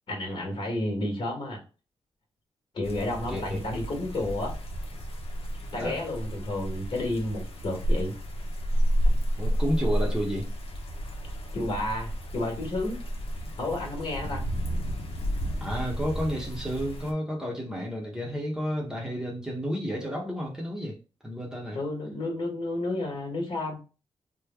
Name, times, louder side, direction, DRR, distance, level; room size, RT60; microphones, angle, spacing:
voice 1, 0.1-1.6 2.7-4.6 5.7-8.1 11.5-13.0 13.6-14.4 21.7-23.8, left 1 dB, 45° left, 1.5 m, -31 dB
sound 1, 2.8-17.1, equal, 65° left, 0.7 m, -31 dB
voice 2, 3.3-3.6 5.8-6.0 9.4-10.5 14.2-14.4 15.6-21.0 21.2-21.8, equal, 5° right, 0.9 m, -31 dB
3.1 x 2.2 x 3.4 m
cardioid pair, 95°, 10 cm